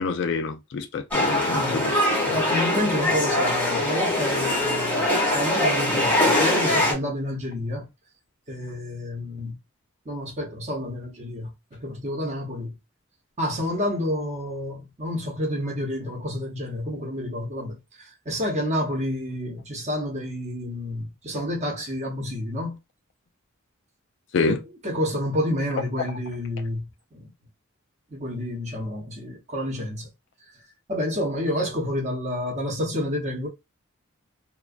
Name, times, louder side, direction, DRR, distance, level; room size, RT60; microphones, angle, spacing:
voice 1, 0.0-2.1 3.1-3.2 24.3-24.6, left 4 dB, 55° left, 0.3 m, -27 dB
sound 1, 1.1-6.9, left 1 dB, 10° left, 0.7 m, -22 dB
voice 2, 1.5-1.9 2.3-7.9 8.5-9.6 10.1-12.8 13.4-22.8 24.5-27.2 28.1-30.1 30.9-33.5, left 1 dB, 30° right, 0.7 m, -29 dB
2.3 x 2.2 x 2.5 m
head